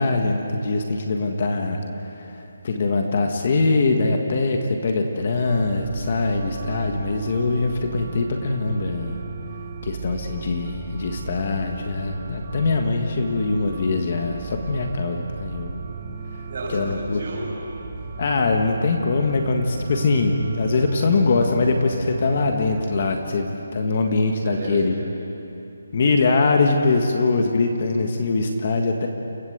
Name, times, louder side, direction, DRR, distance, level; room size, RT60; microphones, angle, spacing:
voice 1, 0.0-9.2 9.8-15.8 16.7-17.2 18.2-24.9 25.9-29.1, left 3 dB, 35° left, 3 dB, 1.6 m, -22 dB
sound 1, 5.4-22.9, right 5 dB, 25° right, 1.2 m, -35 dB
voice 2, 16.5-18.1 24.2-25.4, right 1 dB, 40° right, -3 dB, 8.0 m, -34 dB
29.5 x 17.0 x 8.1 m, 2.8 s
hypercardioid pair, 175°, 0 cm